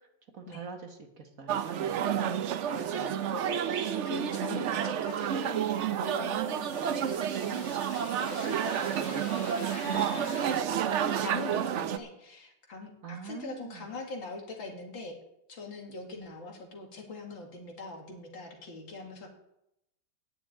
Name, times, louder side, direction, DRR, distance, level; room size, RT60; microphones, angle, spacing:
voice 1, 0.3-2.3 9.9-11.0 13.0-13.9, right 6 dB, 50° right, 4 dB, 1.8 m, -44 dB
sound 1, 1.5-12.0, right 9 dB, 80° right, 0.6 m, -30 dB
voice 2, 2.2-5.7 6.0-9.3 9.6-10.8 11.2-15.1 15.5-19.3, left 3 dB, 85° left, 2 dB, 2.8 m, -43 dB
sound 2, 5.1-10.6, left 8 dB, 60° left, 1.3 m, -49 dB
9.7 x 7.2 x 8.8 m, 0.82 s
omnidirectional pair, 2.0 m